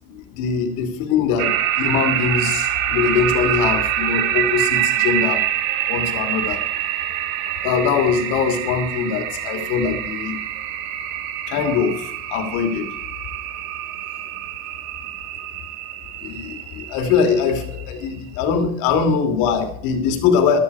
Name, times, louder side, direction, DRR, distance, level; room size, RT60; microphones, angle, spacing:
voice 1, 0.1-5.4 5.9-6.6 7.6-10.3 11.5-12.9 16.2-20.6, left 6 dB, 75° left, 5 dB, 2.9 m, -22 dB
sound 1, 1.4-18.1, right 12 dB, 85° right, 1.7 m, -25 dB
14.0 x 13.0 x 4.8 m, 0.66 s
cardioid pair, 165°, 30 cm